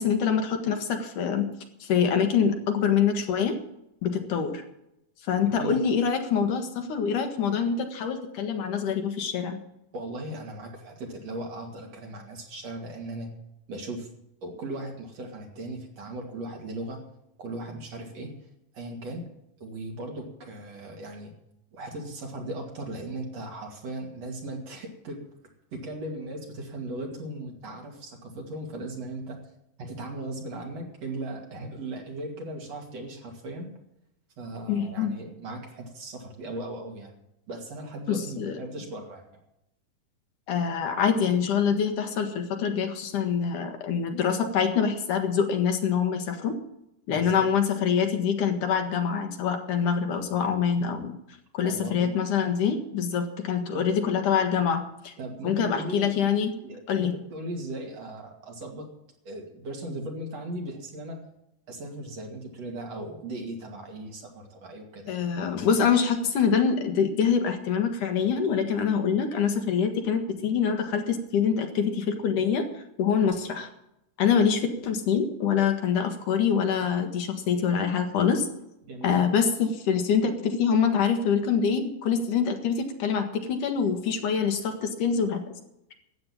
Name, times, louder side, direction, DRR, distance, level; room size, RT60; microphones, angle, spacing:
voice 1, 0.0-1.5 1.8-3.6 4.0-4.6 5.2-9.6 34.7-35.2 38.1-38.6 40.5-46.6 47.1-51.1 51.5-55.1 55.4-56.6 56.9-57.1 65.1-73.7 74.2-78.5 79.0-85.4, left 7 dB, 70° left, 5 dB, 3.0 m, -25 dB
voice 2, 5.4-5.8 9.9-13.3 13.7-14.1 14.4-17.0 17.4-18.3 18.7-19.3 19.6-21.3 21.7-25.2 25.7-29.4 29.8-33.7 34.4-37.1 37.5-39.4 47.1-47.5 51.6-52.1 53.7-54.0 55.2-56.1 56.6-58.9 59.3-61.3 61.7-65.3 78.9-79.3, right 1 dB, 50° right, 1 dB, 3.4 m, -37 dB
13.0 x 8.9 x 8.7 m, 0.82 s
omnidirectional pair, 3.9 m